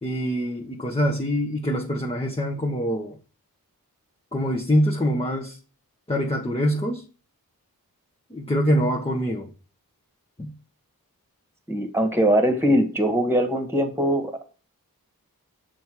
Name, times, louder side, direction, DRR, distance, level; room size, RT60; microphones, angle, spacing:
voice 1, 0.0-3.2 4.3-5.6 6.1-7.0 8.3-9.5 10.4-10.5, equal, 15° left, 1.0 m, -24 dB
voice 2, 11.7-14.3, equal, 5° right, 1.5 m, -21 dB
6.3 x 3.5 x 4.4 m
wide cardioid pair, 45°, 36 cm